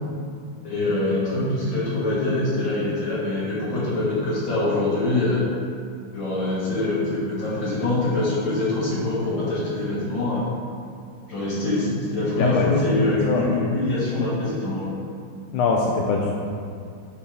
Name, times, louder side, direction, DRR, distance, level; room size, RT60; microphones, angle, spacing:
voice 1, 0.6-5.4 6.1-10.4 11.3-14.9, left 2 dB, 60° left, -9 dB, 2.8 m, -24 dB
voice 2, 12.4-12.7 13.1-13.5 15.5-16.3, left 4 dB, 90° left, -1 dB, 1.5 m, -23 dB
9.5 x 4.8 x 3.5 m, 2.3 s
omnidirectional pair, 2.3 m